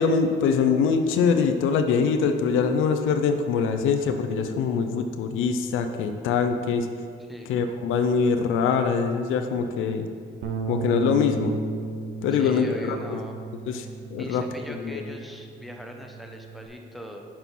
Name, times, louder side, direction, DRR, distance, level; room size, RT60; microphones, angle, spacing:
voice 1, 0.0-6.9 7.5-10.1 10.7-11.6 12.2-13.2 13.7-13.9 14.1-14.4 14.8-15.0, left 5 dB, 90° left, 7 dB, 0.5 m, -23 dB
Bass guitar, 10.4-16.7, right 3 dB, 70° right, 0.7 m, -35 dB
voice 2, 12.3-13.3 13.7-13.9 14.2-17.2, equal, ahead, 2 dB, 0.7 m, -40 dB
6.1 x 4.3 x 5.3 m, 2.2 s
cardioid pair, 90°, 20 cm